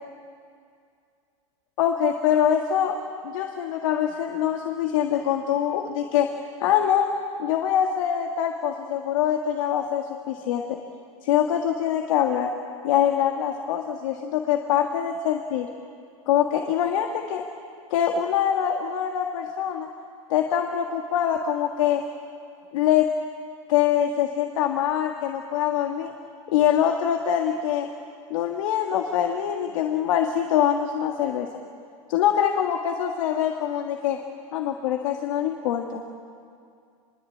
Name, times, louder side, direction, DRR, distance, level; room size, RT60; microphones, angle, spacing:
voice 1, 1.8-3.0 3.2-6.3 6.6-7.1 7.4-10.8 11.2-12.5 12.8-15.7 16.3-17.4 17.9-19.9 20.3-22.0 22.7-23.1 23.7-26.1 26.5-27.9 28.3-31.5 32.1-34.2 34.5-36.0, left 9 dB, 70° left, 3 dB, 1.8 m, -24 dB
25.0 x 22.0 x 8.5 m, 2.3 s
hypercardioid pair, 115°, 18 cm